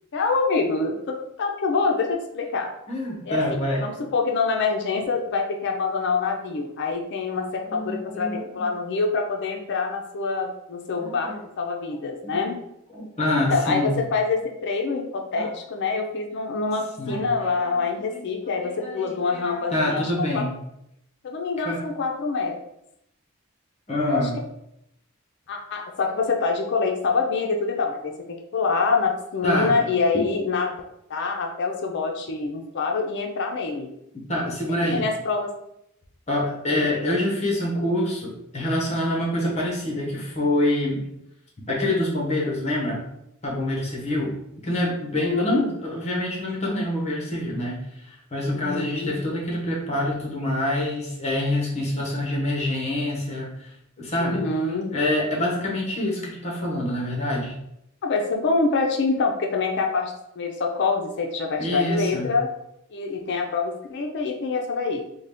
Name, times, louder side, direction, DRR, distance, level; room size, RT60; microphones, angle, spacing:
voice 1, 0.1-2.7 3.3-12.6 13.5-20.0 20.3-20.4 21.2-22.6 24.1-24.3 25.5-30.8 31.1-33.9 34.9-35.5 36.7-37.0 45.2-45.7 48.5-49.2 54.2-54.9 58.0-62.5 62.9-65.0, left 4 dB, 55° left, 2 dB, 0.4 m, -26 dB
voice 2, 2.9-3.9 7.7-8.6 11.0-11.4 12.2-12.5 12.9-14.0 15.3-15.5 17.0-18.2 18.6-20.6 21.6-21.8 23.9-24.4 29.4-29.7 34.3-35.0 36.3-41.0 41.7-43.0 43.4-44.3 44.6-53.7 54.0-54.5 54.9-57.5 61.6-62.3, left 1 dB, 30° left, -3 dB, 0.9 m, -26 dB
3.8 x 2.2 x 3.4 m, 0.81 s
head